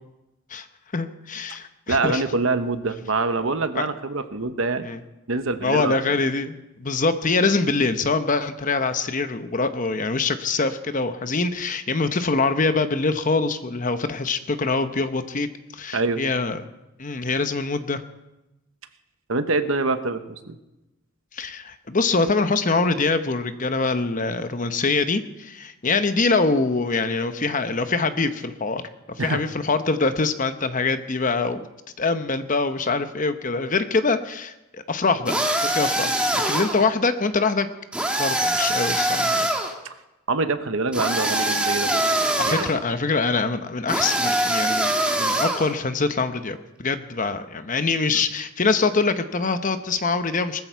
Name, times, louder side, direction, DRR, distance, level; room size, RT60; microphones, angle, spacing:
voice 1, 0.9-2.2 3.7-3.9 4.8-5.0 5.6-15.5 15.7-16.7 17.0-18.0 21.3-28.8 29.2-31.7 32.0-35.4 35.6-37.7 38.2-39.5 42.2-44.9 45.2-50.6, left 3 dB, 35° left, 9 dB, 0.9 m, -24 dB
voice 2, 1.9-4.9 5.3-6.0 15.9-16.2 19.3-20.6 29.2-29.4 40.3-42.0 42.5-42.7, right 3 dB, 60° right, 9 dB, 1.1 m, -25 dB
sound 1, 35.3-36.8 37.9-39.7 40.9-42.7 43.9-45.7, right 1 dB, 5° right, 1.6 m, -23 dB
20.0 x 14.0 x 4.6 m, 0.97 s
head